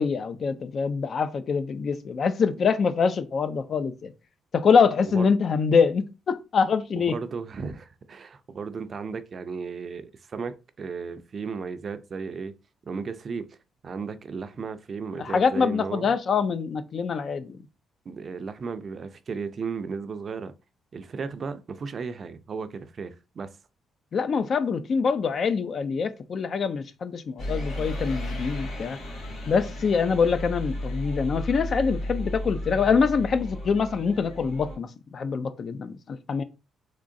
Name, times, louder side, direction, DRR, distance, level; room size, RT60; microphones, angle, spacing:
voice 1, 0.0-4.1 4.5-7.1 15.2-17.6 24.1-29.0 29.5-36.4, left 5 dB, 50° left, 0.4 m, -24 dB
voice 2, 7.0-12.5 12.9-13.6 13.8-16.1 18.1-20.5 20.9-23.6, right 5 dB, 45° right, 0.4 m, -35 dB
Solar Flares II, 27.4-34.8, left 1 dB, 80° left, 2.1 m, -34 dB
3.7 x 3.0 x 2.5 m
cardioid pair, 90°, 0 cm